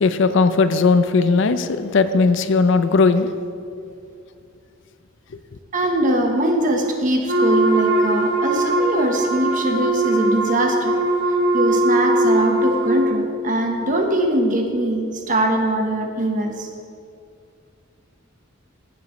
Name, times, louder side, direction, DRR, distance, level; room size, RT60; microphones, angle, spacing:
voice 1, 0.0-3.3, left 4 dB, 65° left, 11 dB, 0.5 m, -17 dB
voice 2, 5.7-11.0 11.5-16.7, right 1 dB, 40° right, 3 dB, 1.1 m, -22 dB
Wind instrument woodwind instrument, 7.3-13.0, right 1 dB, 55° right, 1.6 m, -20 dB
15.5 x 7.8 x 3.1 m, 2.4 s
head